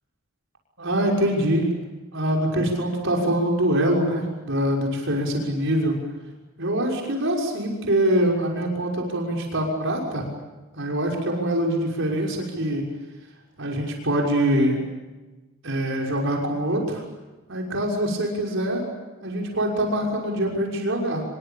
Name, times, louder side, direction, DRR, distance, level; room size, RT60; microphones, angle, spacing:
voice 1, 0.8-1.7 2.1-6.0 6.6-10.2 10.7-12.8 13.6-14.8 15.6-17.0 17.5-18.8 19.2-21.2, right 1 dB, 65° right, 0 dB, 6.1 m, -24 dB
26.5 x 23.5 x 8.8 m, 1.2 s
head